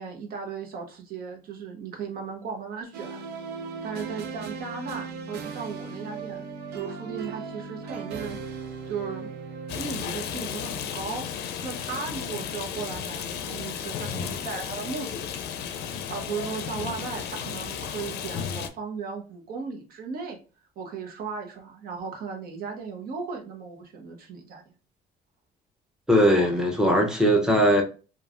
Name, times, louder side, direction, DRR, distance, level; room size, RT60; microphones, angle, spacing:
voice 1, 0.0-3.2 3.8-6.5 6.7-9.3 9.7-11.3 11.6-15.5 16.1-20.4 20.8-24.6, right 5 dB, 60° right, 0.9 m, -36 dB
sound 1, 2.9-10.3, right 5 dB, 80° right, 0.6 m, -37 dB
Rain, 9.7-18.7, left 8 dB, 75° left, 0.5 m, -34 dB
voice 2, 26.1-27.8, equal, 5° right, 0.7 m, -20 dB
3.1 x 2.3 x 2.4 m
cardioid pair, 110°, 17 cm